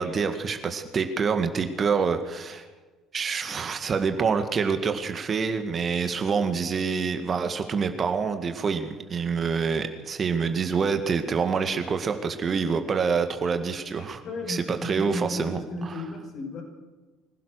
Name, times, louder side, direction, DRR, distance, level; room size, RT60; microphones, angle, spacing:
voice 1, 0.0-2.7 3.1-14.2 14.5-15.9, right 5 dB, 35° right, 7 dB, 2.0 m, -26 dB
voice 2, 14.0-16.6, left 2 dB, 50° left, 2 dB, 6.4 m, -34 dB
24.5 x 17.5 x 6.5 m, 1.3 s
figure-of-eight pair, 55°, 0 cm